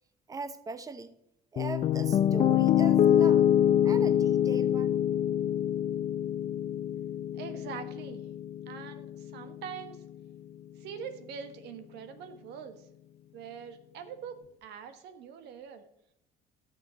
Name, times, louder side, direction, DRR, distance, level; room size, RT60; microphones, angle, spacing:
voice 1, 0.3-1.1 1.5-3.5 3.8-4.9, right 4 dB, 20° right, 11 dB, 0.7 m, -39 dB
Piano, 1.6-9.7, left 10 dB, 40° left, 0.4 m, -26 dB
voice 2, 7.3-8.3 8.7-10.0 10.8-12.9 13.3-15.8, right 7 dB, 85° right, 9 dB, 1.3 m, -43 dB
11.5 x 6.8 x 5.2 m, 0.80 s
cardioid pair, 110°, 17 cm